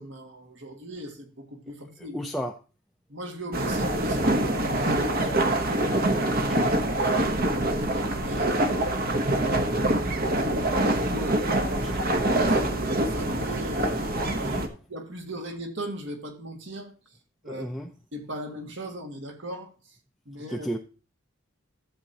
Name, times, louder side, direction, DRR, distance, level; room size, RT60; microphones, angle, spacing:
voice 1, 0.0-2.2 3.1-6.1 6.4-8.6 9.2-13.9 14.4-14.6 14.9-16.9 17.4-17.7 18.1-20.0 20.3-20.7, equal, 60° right, 3 dB, 1.9 m, -39 dB
voice 2, 2.0-2.5 5.9-6.6 7.4-7.8 11.8-12.0 14.4-14.6 17.5-17.9 20.5-20.8, equal, ahead, 0 dB, 0.5 m, -35 dB
sound 1, 3.5-14.7, right 1 dB, 45° right, 1.0 m, -25 dB
12.5 x 8.1 x 2.8 m, 0.34 s
head